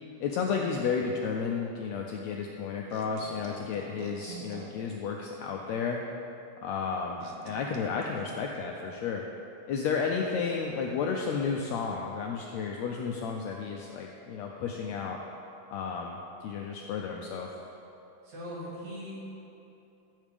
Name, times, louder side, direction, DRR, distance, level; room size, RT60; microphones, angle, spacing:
voice 1, 0.2-6.0 6.6-9.2 9.7-15.2 15.7-17.5, left 5 dB, 85° left, 1 dB, 1.5 m, -32 dB
sound 1, 2.9-4.9 7.2-8.8, right 5 dB, 85° right, 2.2 m, -47 dB
voice 2, 18.2-19.2, equal, 65° right, -8 dB, 3.8 m, -40 dB
14.0 x 7.4 x 3.4 m, 2.9 s
omnidirectional pair, 3.7 m